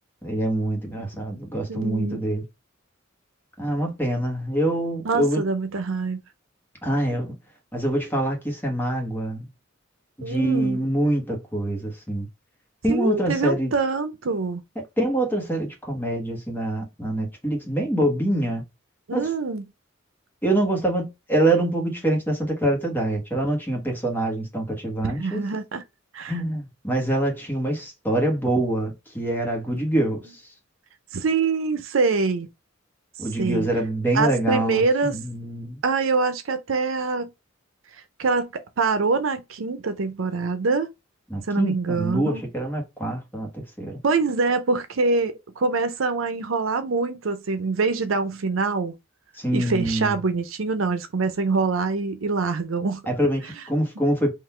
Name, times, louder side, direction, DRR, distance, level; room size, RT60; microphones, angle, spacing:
voice 1, 0.2-2.4 3.6-5.4 6.8-7.3 7.7-9.4 10.2-12.3 12.8-13.7 15.0-18.6 19.1-19.3 20.4-25.4 26.3-30.2 33.2-34.8 35.1-35.8 41.3-43.9 49.4-50.2 53.1-54.3, right 1 dB, 10° left, 1.4 m, -25 dB
voice 2, 1.7-2.2 5.0-6.2 10.2-10.8 12.9-14.6 19.1-19.6 25.0-25.8 26.1-26.4 31.1-32.5 33.4-33.7 34.1-35.2 35.8-37.3 38.2-38.5 38.8-40.9 41.5-42.4 44.0-48.9 49.5-53.0, right 4 dB, 80° right, 0.6 m, -24 dB
3.9 x 2.8 x 4.4 m
head